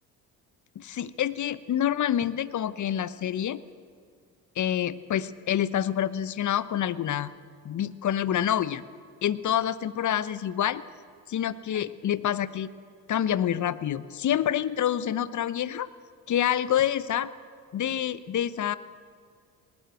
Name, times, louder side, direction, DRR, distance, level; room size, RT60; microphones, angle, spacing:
voice 1, 0.7-3.6 4.6-7.3 7.6-8.8 9.2-10.8 11.3-12.7 13.1-15.9 16.3-17.3 17.7-18.8, left 10 dB, 35° left, 16 dB, 1.0 m, -27 dB
20.0 x 19.5 x 7.8 m, 2.2 s
hypercardioid pair, 55°, 48 cm